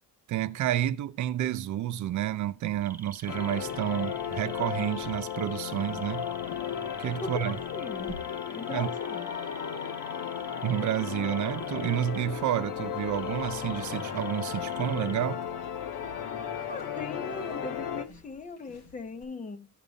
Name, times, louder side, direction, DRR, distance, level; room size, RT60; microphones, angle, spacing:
voice 1, 0.3-6.3 7.0-7.6 8.7-8.9 10.6-15.4, right 12 dB, 65° right, 0.7 m, -30 dB
sound 1, 2.1-19.2, left 1 dB, 55° left, 4.9 m, -55 dB
sound 2, 2.8-12.2 13.1-15.1, right 1 dB, 5° right, 0.8 m, -48 dB
sound 3, 3.3-18.0, left 8 dB, 75° left, 1.6 m, -35 dB
voice 2, 7.2-8.2 8.5-9.3 16.7-19.7, left 3 dB, 25° left, 1.1 m, -39 dB
15.0 x 5.4 x 4.0 m
cardioid pair, 180°, 32 cm